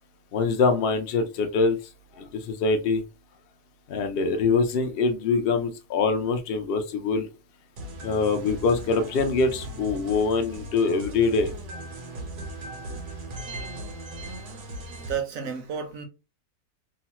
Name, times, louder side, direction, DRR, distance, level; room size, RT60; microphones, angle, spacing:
voice 1, 0.3-1.8 2.2-3.0 3.9-7.3 8.0-11.5, left 4 dB, 65° left, 0.5 m, -24 dB
sound 1, 7.8-15.2, right 1 dB, 85° right, 1.4 m, -38 dB
voice 2, 14.3-16.1, right 7 dB, 65° right, 1.0 m, -34 dB
3.1 x 2.0 x 2.8 m
omnidirectional pair, 1.6 m